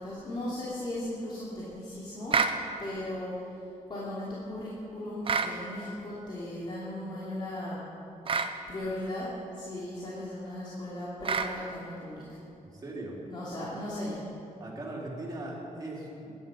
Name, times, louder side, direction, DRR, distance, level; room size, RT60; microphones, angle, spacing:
voice 1, 0.0-2.4 2.8-3.4 3.9-7.8 8.7-12.4 13.3-14.2, left 1 dB, 35° left, -8 dB, 3.0 m, -37 dB
sound 1, 2.3-2.6 5.2-5.6 8.3-8.5 11.2-11.5, right 5 dB, 45° right, 0.9 m, -27 dB
voice 2, 12.7-13.2 14.6-16.4, right 1 dB, 30° right, -5 dB, 4.1 m, -39 dB
20.0 x 11.0 x 5.6 m, 2.8 s
wide cardioid pair, 130°, 13 cm